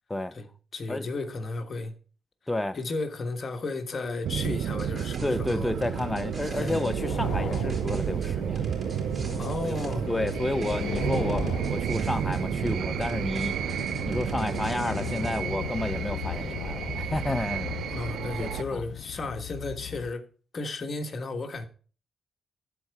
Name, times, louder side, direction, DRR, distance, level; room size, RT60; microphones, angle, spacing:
voice 1, 0.7-1.9 2.7-5.7 6.5-6.9 9.4-10.1 17.8-20.2 20.5-21.7, left 3 dB, 40° left, 1.4 m, -34 dB
voice 2, 2.5-2.8 5.2-8.7 9.6-13.8 14.1-17.7 18.4-18.8, left 1 dB, 15° left, 0.6 m, -31 dB
sound 1, 4.2-18.6, right 10 dB, 75° right, 0.3 m, -31 dB
sound 2, 4.4-6.9 7.5-10.4 10.6-12.4 12.7-15.4, right 3 dB, 40° right, 3.3 m, -40 dB
sound 3, 5.6-20.1, left 11 dB, 80° left, 0.4 m, -38 dB
12.0 x 4.5 x 4.7 m
cardioid pair, 85°, 0 cm